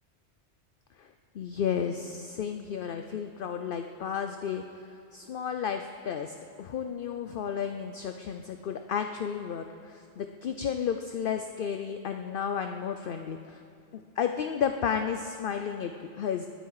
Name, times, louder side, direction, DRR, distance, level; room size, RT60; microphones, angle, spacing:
voice 1, 1.0-13.6 13.9-16.5, left 7 dB, 55° left, 6 dB, 0.8 m, -33 dB
20.5 x 13.5 x 4.8 m, 2.4 s
omnidirectional pair, 1.1 m